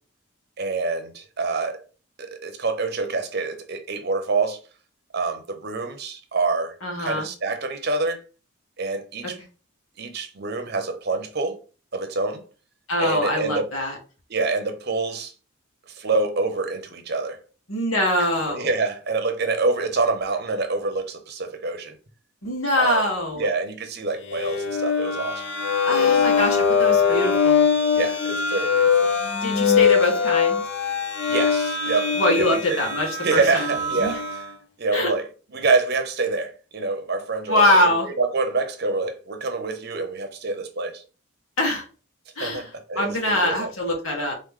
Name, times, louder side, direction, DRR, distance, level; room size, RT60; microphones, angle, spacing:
voice 1, 0.6-1.8 2.2-4.6 5.1-8.2 8.8-9.4 10.0-11.6 11.9-12.4 13.0-13.7 14.3-15.3 15.9-17.4 18.2-22.0 22.8-23.0 23.4-25.4 25.9-26.2 27.1-27.2 27.9-29.1 31.3-32.9 33.2-34.2 34.8-41.0 42.4-43.7, right 3 dB, 50° right, 0.7 m, -26 dB
voice 2, 6.8-7.3 12.9-14.0 17.7-18.7 22.4-23.4 25.8-27.7 29.4-30.6 32.2-33.7 34.0-34.2 34.9-35.1 37.5-38.1 41.6-41.8 42.4-42.7 42.9-44.3, left 1 dB, 70° left, 1.7 m, -23 dB
sound 1, 24.3-34.5, left 6 dB, 55° left, 0.6 m, -22 dB
3.9 x 3.2 x 3.7 m
head